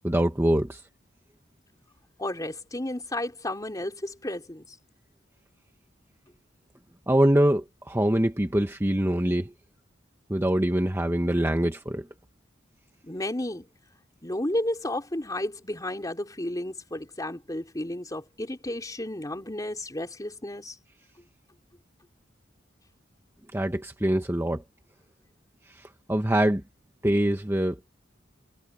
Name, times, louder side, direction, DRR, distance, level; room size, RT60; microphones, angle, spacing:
voice 1, 0.0-0.8 7.1-9.5 10.3-12.1 23.5-24.6 25.7-26.6 27.0-27.8, right 1 dB, 15° right, 1.0 m, -24 dB
voice 2, 2.2-4.6 13.0-13.6 14.2-20.8, left 1 dB, 20° left, 3.5 m, -32 dB
head